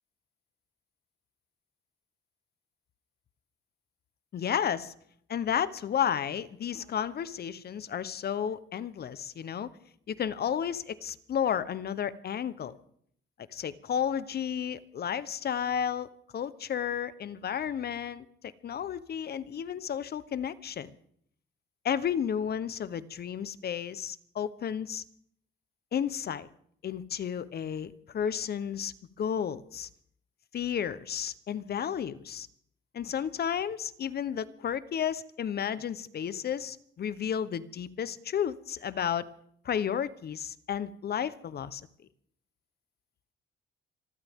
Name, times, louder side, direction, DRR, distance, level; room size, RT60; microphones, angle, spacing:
voice 1, 4.3-4.9 5.3-9.7 10.1-12.7 13.5-20.9 21.8-25.0 25.9-26.5 26.8-29.9 30.5-32.5 32.9-39.3 39.6-41.8, left 8 dB, 55° left, 15 dB, 1.0 m, -32 dB
25.5 x 14.0 x 3.7 m, 0.65 s
cardioid pair, 90°, 20 cm